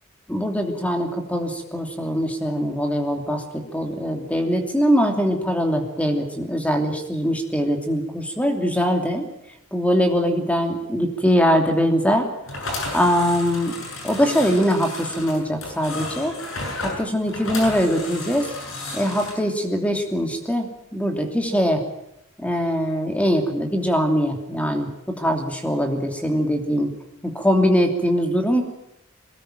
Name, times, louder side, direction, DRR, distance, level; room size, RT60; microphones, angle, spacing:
voice 1, 0.3-9.3 9.7-12.3 12.6-12.7 12.9-13.7 14.0-16.3 16.8-18.5 18.9-21.8 22.4-26.9 27.2-28.6, equal, 5° left, 5 dB, 2.9 m, -22 dB
sound 1, 12.5-19.3, left 2 dB, 65° left, 7.7 m, -32 dB
22.0 x 19.5 x 9.1 m, 0.81 s
head